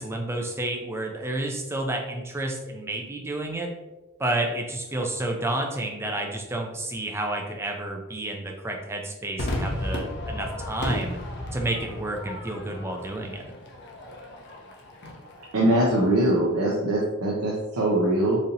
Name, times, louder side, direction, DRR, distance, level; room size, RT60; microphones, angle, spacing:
voice 1, 0.0-3.7 4.2-11.2 11.5-13.5, right 1 dB, 10° right, 1 dB, 0.4 m, -30 dB
Crowd / Fireworks, 9.4-15.9, left 1 dB, 50° left, 0.6 m, -34 dB
voice 2, 15.5-18.4, right 1 dB, 90° right, -4 dB, 0.6 m, -22 dB
4.1 x 2.8 x 2.6 m, 1.1 s
head